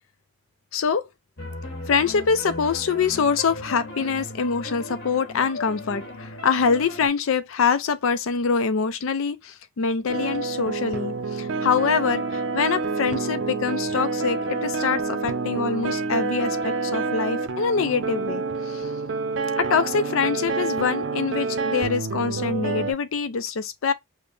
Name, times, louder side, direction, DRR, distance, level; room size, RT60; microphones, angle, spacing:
voice 1, 0.7-1.1 1.9-18.9 19.6-23.9, left 5 dB, 70° left, 0.4 m, -24 dB
sound 1, 1.4-7.1, left 1 dB, 50° left, 1.4 m, -37 dB
sound 2, 10.1-22.9, right 3 dB, 55° right, 0.5 m, -28 dB
5.1 x 2.1 x 2.6 m
head